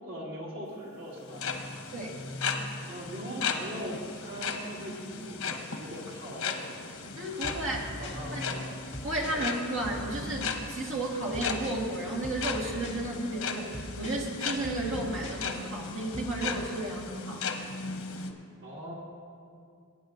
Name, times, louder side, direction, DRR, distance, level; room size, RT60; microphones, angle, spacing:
voice 1, 0.0-1.9 2.9-6.7 7.3-8.7 9.3-9.5 18.6-18.9, equal, 85° right, -5 dB, 2.7 m, -41 dB
sound 1, 1.2-18.3, left 5 dB, 85° left, 1.0 m, -37 dB
voice 2, 7.2-7.9 8.3-8.4 9.0-17.5, right 1 dB, 70° right, -1 dB, 1.8 m, -33 dB
sound 2, 7.4-17.0, left 1 dB, 30° left, 1.9 m, -42 dB
22.5 x 9.3 x 2.6 m, 2.4 s
head